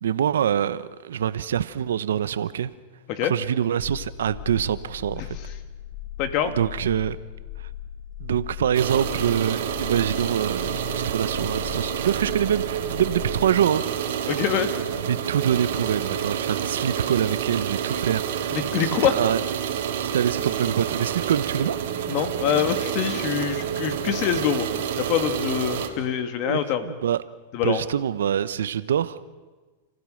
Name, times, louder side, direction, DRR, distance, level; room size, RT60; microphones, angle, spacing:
voice 1, 0.0-2.7 3.2-5.3 6.6-7.2 8.2-13.8 15.1-18.6 18.8-19.4 20.0-21.8 24.0-24.1 26.4-27.2 27.6-29.2, right 9 dB, 90° right, 15 dB, 0.9 m, -25 dB
sound 1, 3.8-13.5, left 11 dB, 25° left, 1.1 m, -38 dB
voice 2, 6.2-6.5 14.3-14.7 18.5-19.1 22.1-24.7 25.0-26.9 27.5-27.8, left 9 dB, 50° left, 9 dB, 2.1 m, -25 dB
sound 2, 8.7-25.9, right 8 dB, 70° right, 2.5 m, -29 dB
30.0 x 15.5 x 6.5 m, 1.3 s
supercardioid pair, 130°, 0 cm